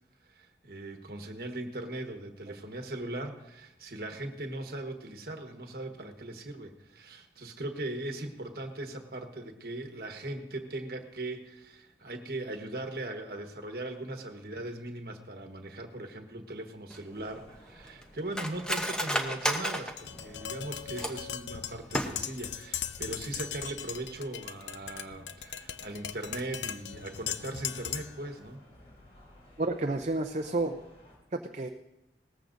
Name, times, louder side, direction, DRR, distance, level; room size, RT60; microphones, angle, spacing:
voice 1, 0.3-28.6, right 2 dB, 55° right, 5 dB, 1.3 m, -39 dB
Cutlery silverware, 16.9-21.4 21.8-22.5 22.8-22.9 23.3-23.6 24.0-24.1, equal, 5° left, 0.8 m, -33 dB
sound 1, 17.1-31.2, left 1 dB, 35° left, 4.1 m, -58 dB
Tap, 20.0-28.2, left 10 dB, 80° left, 0.5 m, -39 dB
voice 2, 29.6-30.8 31.3-31.7, right 2 dB, 40° right, 4 dB, 0.6 m, -31 dB
18.5 x 14.5 x 2.6 m, 0.90 s
head